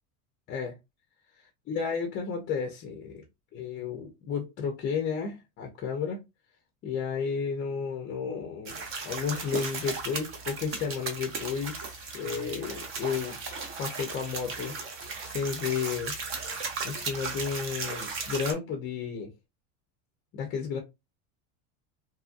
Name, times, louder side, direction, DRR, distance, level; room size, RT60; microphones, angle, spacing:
voice 1, 1.7-3.2 3.5-6.2 6.8-13.4 13.8-16.1 16.8-19.3 20.3-20.8, left 6 dB, 25° left, 0.5 m, -32 dB
sound 1, 8.7-18.5, right 4 dB, 30° right, 0.6 m, -36 dB
2.7 x 2.5 x 2.4 m
cardioid pair, 155°, 41 cm